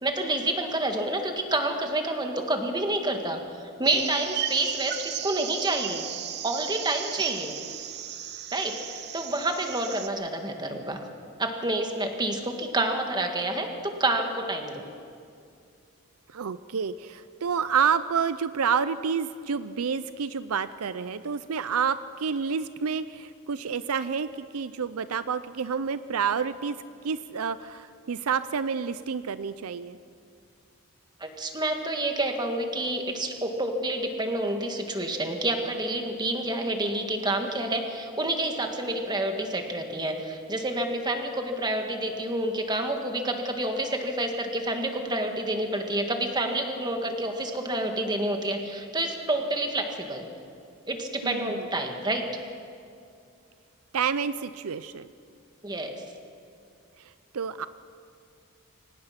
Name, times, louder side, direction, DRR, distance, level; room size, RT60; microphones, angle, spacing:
voice 1, 0.0-3.4 3.8-6.0 6.4-7.5 8.5-11.0 11.4-14.9 31.2-50.2 50.9-52.4 55.6-56.0, right 1 dB, 20° right, 4 dB, 1.8 m, -28 dB
sound 1, 3.8-10.1, right 10 dB, 50° right, 0.8 m, -35 dB
voice 2, 16.3-24.3 24.5-26.8 27.0-30.0 51.2-51.7 53.9-55.1 57.3-57.7, right 6 dB, 80° right, 14 dB, 0.5 m, -29 dB
24.0 x 18.5 x 5.9 m, 2.4 s
head